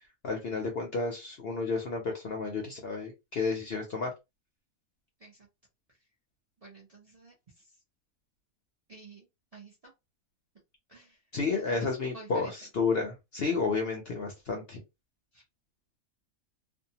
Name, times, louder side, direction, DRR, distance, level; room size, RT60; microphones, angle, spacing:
voice 1, 0.2-4.1 11.3-14.8, left 4 dB, 55° left, 2 dB, 0.7 m, -31 dB
voice 2, 6.6-7.7 8.9-9.9 10.9-11.2 11.6-12.5 15.3-15.4, right 3 dB, 40° right, -2 dB, 0.5 m, -51 dB
2.6 x 2.1 x 2.8 m, 0.23 s
omnidirectional pair, 1.6 m